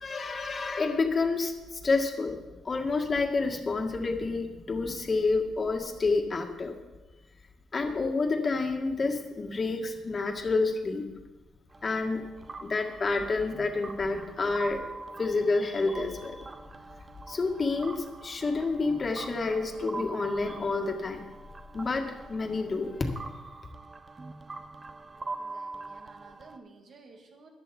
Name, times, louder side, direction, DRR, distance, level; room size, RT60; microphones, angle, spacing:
voice 1, 0.0-2.4 2.6-6.8 7.7-11.1 11.8-12.2 12.6-14.8 15.2-16.5 17.3-21.2 21.7-23.2, left 3 dB, 35° left, 3 dB, 1.9 m, -29 dB
sound 1, 11.7-26.6, right 3 dB, 25° right, 0.7 m, -44 dB
voice 2, 25.4-27.5, right 3 dB, 55° right, 2 dB, 2.5 m, -53 dB
14.0 x 10.5 x 4.5 m, 1.1 s
cardioid pair, 90°, 0 cm